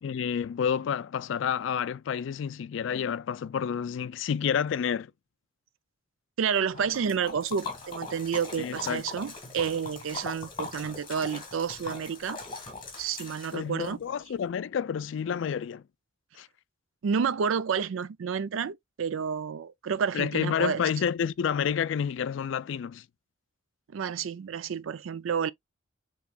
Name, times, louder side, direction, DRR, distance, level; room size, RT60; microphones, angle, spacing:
voice 1, 0.0-5.1 8.6-9.0 13.5-15.8 16.4-16.5 20.1-23.0, left 7 dB, 70° left, 0.3 m, -29 dB
voice 2, 6.4-12.4 13.0-14.0 17.0-20.8 23.9-25.5, right 7 dB, 85° right, 0.4 m, -30 dB
Liquid, 6.7-13.9, left 4 dB, 25° left, 1.7 m, -40 dB
6.9 x 3.0 x 2.3 m
head